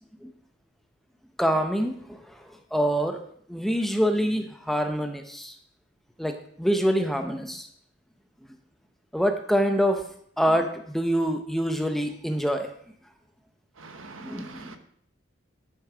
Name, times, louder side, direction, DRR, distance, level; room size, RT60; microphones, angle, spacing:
voice 1, 1.4-1.9 2.7-3.2 3.5-5.5 6.2-7.7 9.1-10.0 10.4-12.7 14.2-14.8, equal, ahead, 0.6 m, -25 dB
voice 2, 13.8-14.8, right 3 dB, 80° right, 1.0 m, -43 dB
10.5 x 6.4 x 4.9 m
head